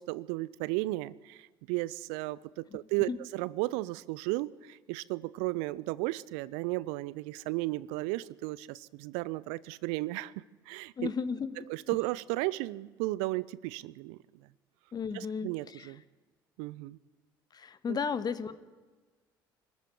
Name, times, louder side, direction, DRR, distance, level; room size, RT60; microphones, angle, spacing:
voice 1, 0.0-11.1 11.7-14.5 15.1-16.0 16.6-17.0 17.9-18.0, right 20 dB, 65° right, 21 dB, 0.6 m, -34 dB
voice 2, 11.0-11.5 14.9-15.9 17.5-18.6, left 6 dB, 35° left, 13 dB, 1.7 m, -34 dB
25.0 x 13.5 x 10.0 m, 1.3 s
figure-of-eight pair, 55°, 12 cm